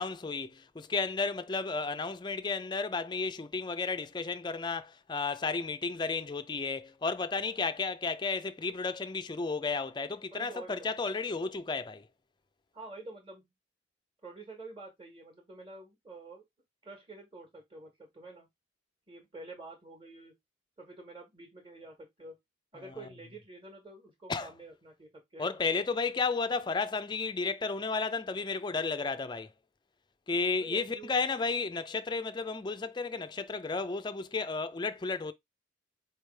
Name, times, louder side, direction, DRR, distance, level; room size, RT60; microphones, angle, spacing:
voice 1, 0.0-12.1 24.3-24.5 25.4-29.5 30.3-35.3, left 4 dB, 20° left, 0.4 m, -33 dB
voice 2, 10.3-10.9 12.7-13.5 14.2-16.5 16.8-18.5 19.1-20.4 20.8-22.4 22.7-25.6 30.6-31.1, right 2 dB, 25° right, 1.3 m, -48 dB
4.6 x 3.2 x 3.3 m
head